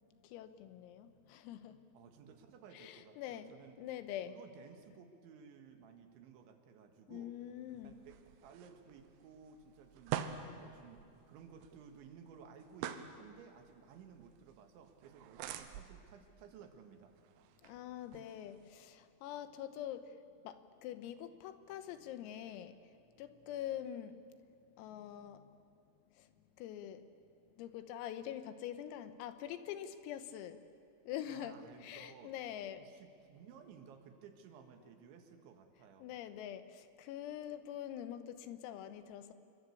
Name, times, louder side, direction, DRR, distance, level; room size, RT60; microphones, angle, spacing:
voice 1, 0.2-1.8 2.7-3.5 3.8-4.3 7.1-8.0 17.6-20.1 20.4-22.8 23.2-24.2 24.8-25.5 26.2-26.3 26.6-27.0 27.6-30.6 31.1-31.6 31.8-32.8 36.0-39.3, left 11 dB, 85° left, 10 dB, 3.9 m, -45 dB
voice 2, 1.9-3.8 4.2-7.3 7.7-10.2 10.5-17.2 31.3-32.3 32.8-36.1, right 7 dB, 70° right, 6 dB, 3.7 m, -57 dB
sound 1, 7.7-19.0, right 10 dB, 90° right, 3.8 m, -48 dB
28.0 x 23.0 x 8.5 m, 2.6 s
omnidirectional pair, 5.9 m